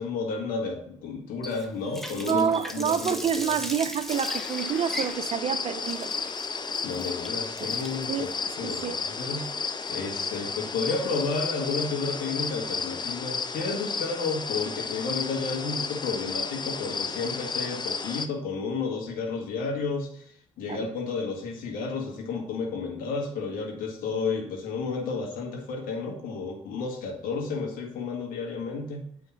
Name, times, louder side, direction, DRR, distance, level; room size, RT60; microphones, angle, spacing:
voice 1, 0.0-2.5 2.7-3.2 3.5-3.6 6.8-9.5 9.9-20.3 20.6-29.0, left 4 dB, 65° left, 1.8 m, -32 dB
Water tap faucet, 1.4-10.4, equal, ahead, 1.2 m, -40 dB
voice 2, 2.2-6.1 7.6-7.7 8.1-8.3 8.6-9.0 20.7-20.9, right 8 dB, 40° right, 0.6 m, -28 dB
sound 1, 4.1-18.3, left 4 dB, 30° left, 0.8 m, -33 dB
8.8 x 3.5 x 5.7 m
hypercardioid pair, 50°, 15 cm